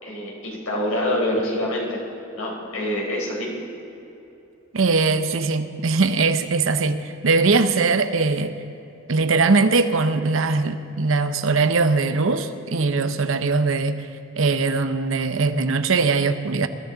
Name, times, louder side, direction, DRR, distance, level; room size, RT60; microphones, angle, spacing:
voice 1, 0.0-2.0 2.4-3.5, left 1 dB, 90° left, -2 dB, 4.1 m, -26 dB
voice 2, 4.7-8.5 9.1-14.1 14.4-16.7, right 3 dB, 70° right, 10 dB, 0.8 m, -21 dB
22.0 x 13.5 x 4.0 m, 3.0 s
head